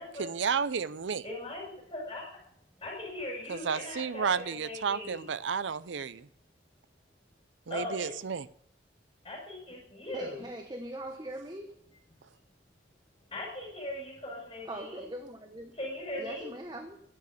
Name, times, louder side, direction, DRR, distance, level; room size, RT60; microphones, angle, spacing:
voice 1, 0.2-1.2 3.5-6.3 7.7-8.5, right 6 dB, 90° right, 16 dB, 0.5 m, -32 dB
voice 2, 1.2-2.3 2.8-5.3 7.7-8.1 9.2-10.4 13.3-15.0 15.8-16.5, left 1 dB, 25° left, -4 dB, 5.6 m, -39 dB
voice 3, 10.1-11.7 14.6-15.8 16.2-17.0, right 1 dB, 20° right, 5 dB, 1.0 m, -41 dB
11.0 x 8.8 x 8.2 m, 0.70 s
head